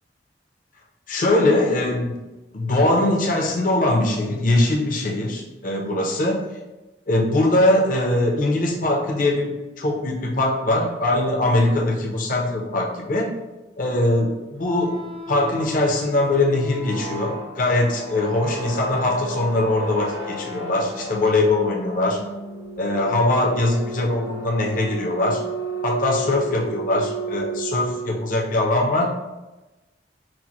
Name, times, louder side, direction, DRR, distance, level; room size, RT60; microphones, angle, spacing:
voice 1, 1.1-2.1 2.5-6.4 7.1-13.3 13.8-14.9 15.3-22.2 22.8-25.4 25.8-29.1, left 2 dB, 50° left, -1 dB, 0.7 m, -21 dB
sound 1, 14.6-28.3, right 3 dB, 85° right, 1.1 m, -33 dB
6.0 x 2.1 x 3.0 m, 1.1 s
head